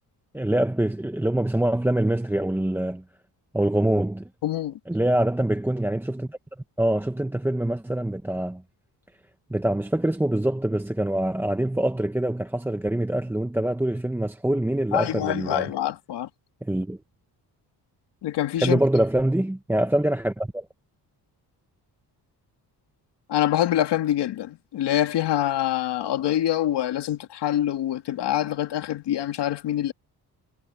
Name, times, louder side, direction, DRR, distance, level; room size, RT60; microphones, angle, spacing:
voice 1, 0.3-3.0 3.5-4.3 4.9-6.4 6.8-8.6 9.5-15.7 16.6-17.0 18.6-20.7, right 1 dB, 5° right, 1.0 m, -24 dB
voice 2, 4.4-4.8 14.9-16.3 18.2-18.8 23.3-29.9, left 12 dB, 80° left, 2.2 m, -25 dB
cardioid pair, 135°, 41 cm